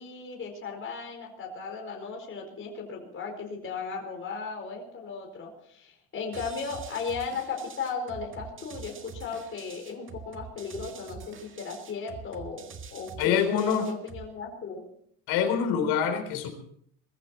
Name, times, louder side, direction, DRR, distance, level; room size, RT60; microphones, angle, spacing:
voice 1, 0.0-14.8, left 5 dB, 35° left, 1 dB, 4.7 m, -36 dB
sound 1, 6.3-14.3, right 5 dB, 30° right, 1.8 m, -45 dB
voice 2, 13.2-13.9 15.3-16.5, left 8 dB, 80° left, 6 dB, 4.2 m, -25 dB
21.0 x 14.5 x 4.5 m, 0.67 s
cardioid pair, 130°, 37 cm